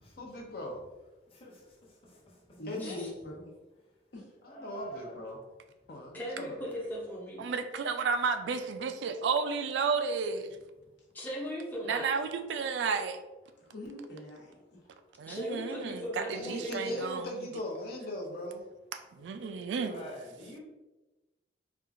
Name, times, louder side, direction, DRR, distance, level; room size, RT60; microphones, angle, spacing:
voice 1, 0.2-0.8 2.7-3.0 4.4-5.4 5.9-6.6 16.3-18.6, left 1 dB, 55° left, 1 dB, 0.6 m, -39 dB
voice 2, 2.6-3.5 4.1-4.3 13.6-14.8, left 1 dB, 75° left, -4 dB, 1.1 m, -43 dB
voice 3, 4.4-5.2 19.3-19.5 19.8-20.6, right 1 dB, 30° left, -5 dB, 0.9 m, -46 dB
voice 4, 6.1-7.5 11.1-12.1 15.3-17.0, equal, 10° left, -4 dB, 0.5 m, -38 dB
voice 5, 7.4-10.5 11.9-13.2 15.2-17.3 19.1-20.1, right 5 dB, 75° right, 8 dB, 0.3 m, -32 dB
4.3 x 2.4 x 2.5 m, 1.1 s
head